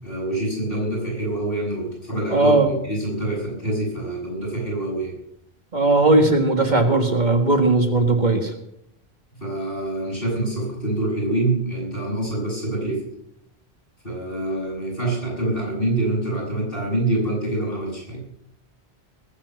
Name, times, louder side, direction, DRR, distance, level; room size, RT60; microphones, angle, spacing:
voice 1, 0.0-5.1 9.4-13.0 14.0-18.2, right 1 dB, 60° left, -4 dB, 7.9 m, -26 dB
voice 2, 2.3-2.7 5.7-8.5, right 2 dB, 45° right, 4 dB, 1.9 m, -18 dB
20.0 x 8.9 x 6.4 m, 0.77 s
omnidirectional pair, 1.0 m